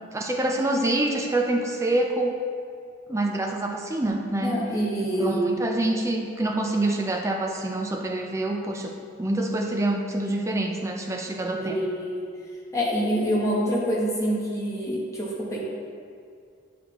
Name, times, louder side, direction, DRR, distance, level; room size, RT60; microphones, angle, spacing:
voice 1, 0.1-2.3 3.1-4.6 5.0-8.9 9.2-11.8, right 1 dB, 15° right, 2 dB, 0.4 m, -26 dB
voice 2, 4.4-5.5 11.5-12.2 12.7-15.6, equal, 15° left, -5 dB, 0.9 m, -26 dB
8.1 x 5.0 x 2.9 m, 2.2 s
head